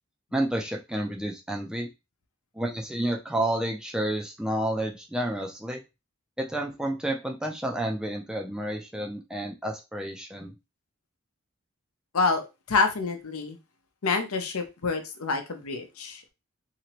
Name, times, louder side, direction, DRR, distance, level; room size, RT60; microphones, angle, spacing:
voice 1, 0.3-1.9 2.6-5.8 6.4-10.5, right 1 dB, 5° right, 1 dB, 0.4 m, -30 dB
voice 2, 12.1-13.6 14.0-16.3, left 4 dB, 85° left, 6 dB, 0.7 m, -27 dB
3.0 x 2.8 x 2.9 m, 0.25 s
head